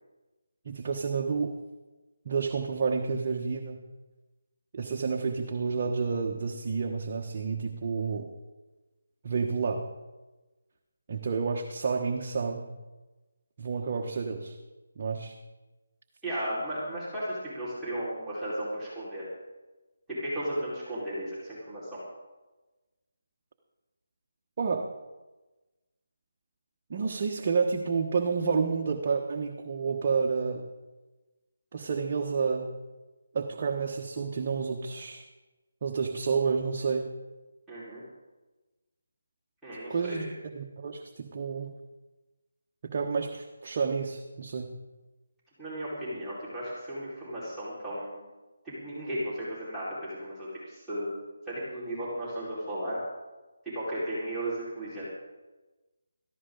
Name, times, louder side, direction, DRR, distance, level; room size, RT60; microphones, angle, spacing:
voice 1, 0.6-1.5 2.2-3.8 4.7-8.3 9.2-9.8 11.1-12.7 13.6-14.6 15.0-15.4 24.6-24.9 26.9-30.7 31.7-32.7 33.3-35.3 35.8-37.1 39.9-41.7 42.8-44.7, right 5 dB, 40° right, 1 dB, 1.2 m, -30 dB
voice 2, 16.2-19.3 20.1-22.0 37.7-38.0 39.6-40.3 45.6-48.1 48.6-51.1 51.5-53.0 53.7-55.1, right 1 dB, 5° right, -13 dB, 4.8 m, -35 dB
17.0 x 14.5 x 4.0 m, 1.1 s
figure-of-eight pair, 160°, 0 cm